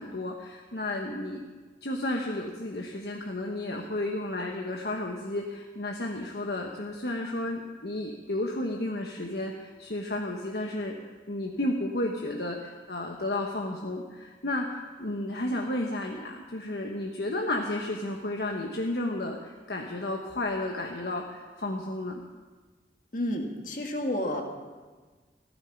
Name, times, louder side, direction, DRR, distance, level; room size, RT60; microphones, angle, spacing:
voice 1, 0.0-1.5 1.8-11.0 11.3-22.2, left 1 dB, 65° left, 1 dB, 1.2 m, -32 dB
voice 2, 23.1-24.4, left 1 dB, 50° left, 2 dB, 1.8 m, -30 dB
15.5 x 13.5 x 5.8 m, 1.4 s
head